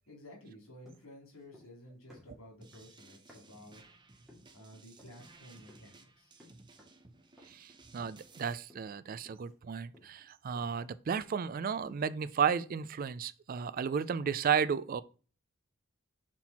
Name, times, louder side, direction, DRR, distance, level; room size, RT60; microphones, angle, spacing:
voice 1, 0.1-3.8 4.5-6.4, left 1 dB, 85° left, 2.9 m, -53 dB
sound 1, 0.8-1.8 2.1-3.7 4.3-4.6 5.0-5.3 5.7-6.0 6.4-7.1 7.4-7.7 8.0-8.4 8.7-9.0 9.2-11.5 11.8-12.2, left 1 dB, ahead, 2.0 m, -61 dB
sound 2, 2.6-8.5, right 3 dB, 20° right, 0.7 m, -58 dB
voice 2, 7.5-15.0, right 7 dB, 45° right, 0.3 m, -33 dB
5.9 x 4.4 x 4.1 m
head